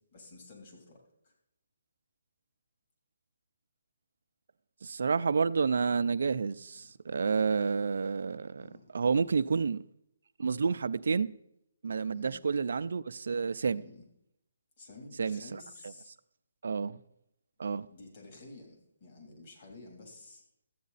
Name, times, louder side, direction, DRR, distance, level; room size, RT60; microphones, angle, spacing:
voice 1, 0.1-1.3 6.7-6.9 7.6-7.7 8.6-8.8 12.1-12.4 13.7-14.0 14.8-16.1 17.9-20.4, left 2 dB, 40° left, 3.0 m, -51 dB
voice 2, 4.8-8.7 8.9-9.8 10.4-11.3 11.8-13.8 15.2-15.6 16.6-17.0 17.6-17.9, right 5 dB, 70° right, 0.5 m, -29 dB
13.5 x 8.5 x 4.1 m
hypercardioid pair, 165°, 0 cm